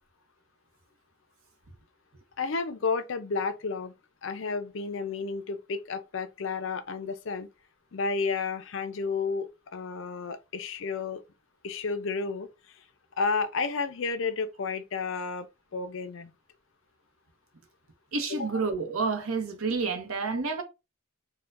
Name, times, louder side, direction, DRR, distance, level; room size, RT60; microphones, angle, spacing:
voice 1, 2.4-3.9 4.2-7.5 7.9-11.2 11.6-12.5 13.2-15.5 15.7-16.3 18.3-18.6, left 4 dB, 60° left, 0.5 m, -31 dB
voice 2, 18.1-20.6, right 4 dB, 80° right, 0.8 m, -29 dB
4.2 x 2.2 x 2.4 m
head